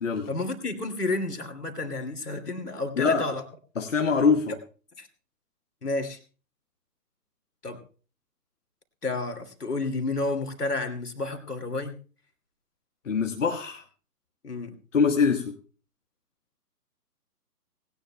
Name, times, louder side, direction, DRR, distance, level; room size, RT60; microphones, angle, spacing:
voice 1, 0.3-3.4 5.0-5.1 5.8-6.2 7.6-7.8 9.0-11.9 14.4-14.8, left 2 dB, 70° left, 7 dB, 2.5 m, -31 dB
voice 2, 3.0-3.3 3.8-4.6 13.0-13.8 14.9-15.6, left 5 dB, 50° left, 3 dB, 1.2 m, -23 dB
19.0 x 17.5 x 2.2 m, 0.38 s
figure-of-eight pair, 135°, 48 cm